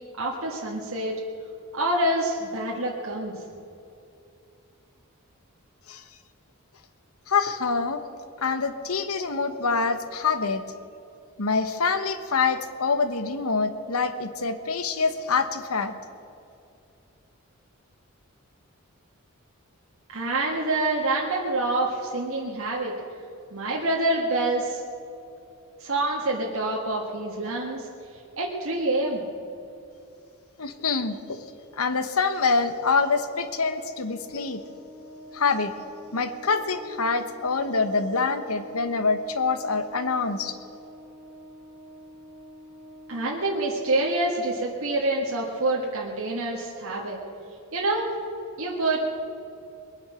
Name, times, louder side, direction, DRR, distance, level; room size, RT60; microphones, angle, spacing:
voice 1, 0.2-1.1 1.7-3.3 20.1-22.9 23.5-24.8 25.8-27.9 28.4-29.2 43.1-47.2 47.7-48.1 48.6-49.0, right 2 dB, 80° right, -2 dB, 1.7 m, -26 dB
voice 2, 7.3-8.0 8.4-10.6 11.4-15.9 30.6-31.4 31.7-34.6 35.3-35.7 36.1-40.5, left 4 dB, 85° left, 9 dB, 1.1 m, -25 dB
Organ, 33.4-44.1, equal, 30° left, 4.0 m, -47 dB
21.5 x 9.7 x 6.4 m, 2.7 s
head